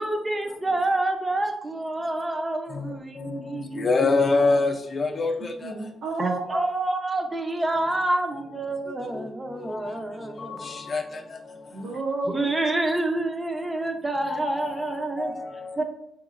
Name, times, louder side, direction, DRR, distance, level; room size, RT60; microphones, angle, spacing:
voice 1, 0.0-4.1 6.2-10.7 12.3-15.3 15.8-15.9, right 2 dB, 15° right, 0.5 m, -28 dB
voice 2, 2.7-5.7 7.8-8.0 8.3-8.6 9.0-9.3 9.6-10.0 10.4-11.4 14.2-15.8, left 3 dB, 35° left, 0.4 m, -27 dB
voice 3, 5.6-6.7 11.7-12.5, right 2 dB, 70° right, 0.7 m, -30 dB
5.3 x 3.0 x 2.5 m
cardioid pair, 140°, 0 cm